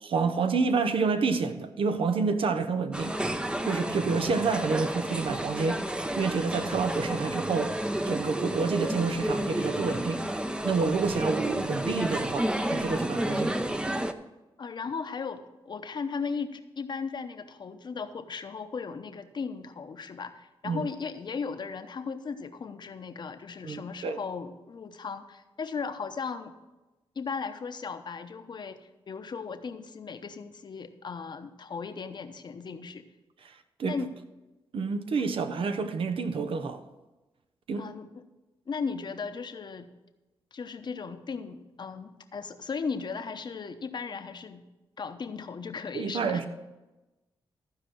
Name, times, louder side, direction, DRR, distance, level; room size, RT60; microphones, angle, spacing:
voice 1, 0.0-3.1 3.6-5.8 6.2-7.7 8.1-10.2 10.6-13.6 20.6-20.8 23.6-24.2 33.4-33.5 33.8-34.0 34.7-36.8 37.7-37.9 45.9-46.5, right 4 dB, 70° right, 0.9 m, -28 dB
sound 1, 2.9-14.1, right 1 dB, 10° right, 0.7 m, -31 dB
voice 2, 14.6-26.5 27.1-33.0 33.9-34.1 37.8-38.3 38.7-39.9 40.5-44.6 45.0-46.4, left 5 dB, 50° left, 0.9 m, -36 dB
14.5 x 4.9 x 6.2 m
cardioid pair, 70°, 10 cm